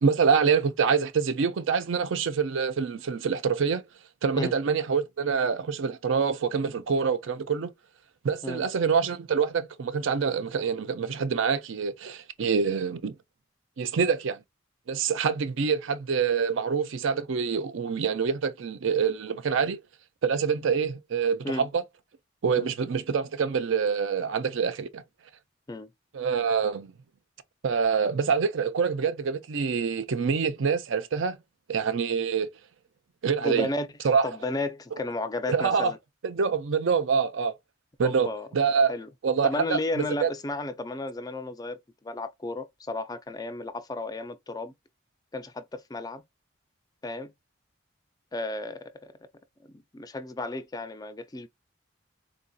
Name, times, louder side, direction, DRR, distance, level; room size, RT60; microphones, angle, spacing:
voice 1, 0.0-3.8 4.2-7.7 8.2-13.1 13.8-14.4 14.9-19.8 20.2-21.8 22.4-25.0 26.1-26.9 27.6-31.4 31.7-32.5 33.2-33.7 34.0-34.3 35.5-35.9 36.2-37.5 38.0-38.9 39.2-39.8 40.2-40.3, right 6 dB, 85° right, 0.5 m, -26 dB
voice 2, 33.4-33.9 34.2-36.0 38.0-38.5 38.9-39.1 39.4-44.7 45.3-46.2 47.0-47.3 48.3-49.1 49.9-51.5, left 2 dB, 20° left, 0.3 m, -33 dB
3.7 x 2.6 x 2.2 m
head